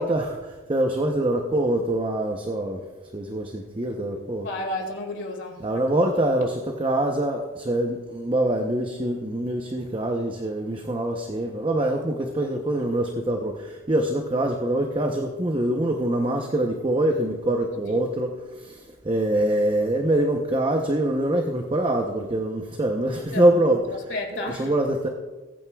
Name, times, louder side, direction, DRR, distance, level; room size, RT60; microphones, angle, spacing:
voice 1, 0.0-2.8 3.1-4.5 5.6-23.8 24.6-25.1, right 1 dB, 25° right, 0.7 m, -24 dB
voice 2, 4.4-6.1 17.7-18.0 23.3-24.8, left 1 dB, 65° left, 2.0 m, -33 dB
21.0 x 9.1 x 2.3 m
head